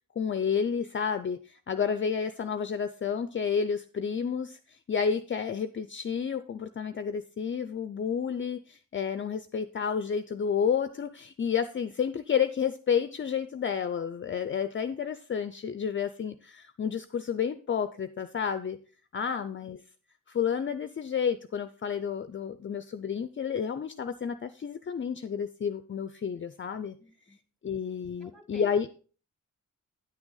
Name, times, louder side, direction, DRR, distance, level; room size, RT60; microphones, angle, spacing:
voice 1, 0.2-18.8 19.1-19.8 20.3-27.0 27.6-28.9, left 7 dB, 40° left, 11 dB, 0.4 m, -30 dB
voice 2, 27.0-27.4 28.2-28.9, left 2 dB, ahead, 6 dB, 1.5 m, -51 dB
9.6 x 6.2 x 3.9 m, 0.39 s
wide cardioid pair, 105°, 32 cm